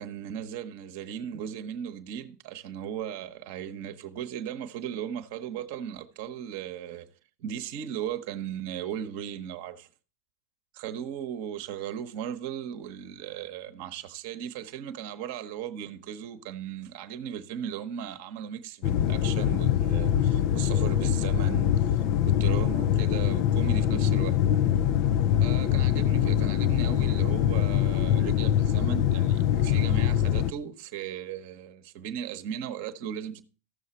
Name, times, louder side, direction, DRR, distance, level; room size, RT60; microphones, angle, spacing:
voice 1, 0.0-7.1 7.4-9.9 10.7-24.4 25.4-33.4, right 9 dB, 55° right, 0.9 m, -37 dB
sound 1, 18.8-30.5, left 10 dB, 50° left, 0.4 m, -24 dB
14.0 x 6.6 x 4.3 m
hypercardioid pair, 90°, 0 cm